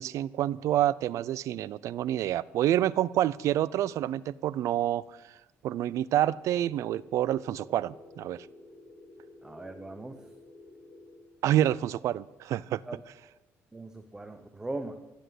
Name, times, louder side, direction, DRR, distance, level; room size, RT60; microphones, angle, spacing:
voice 1, 0.0-5.2 5.6-8.5 11.4-12.8, right 12 dB, 70° right, 0.4 m, -28 dB
sound 1, 6.3-11.3, left 1 dB, 15° left, 2.9 m, -52 dB
voice 2, 9.4-10.2 12.9-13.0 13.7-15.0, right 2 dB, 10° right, 0.8 m, -39 dB
16.0 x 10.0 x 7.9 m
cardioid pair, 150°, 5 cm